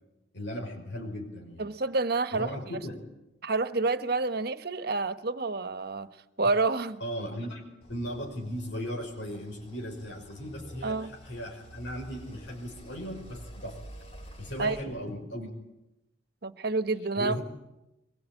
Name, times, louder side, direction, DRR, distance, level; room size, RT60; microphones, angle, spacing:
voice 1, 0.3-1.6 2.3-3.0 7.0-7.6 7.9-13.8 14.4-15.5 17.2-17.4, equal, 80° left, 5.5 m, -37 dB
voice 2, 1.6-2.8 3.4-6.1 6.4-7.0 10.8-11.1 14.6-14.8 16.4-17.3, right 3 dB, 55° right, 1.2 m, -28 dB
sound 1, 7.8-14.8, right 1 dB, 35° left, 3.5 m, -49 dB
23.5 x 20.5 x 9.1 m
head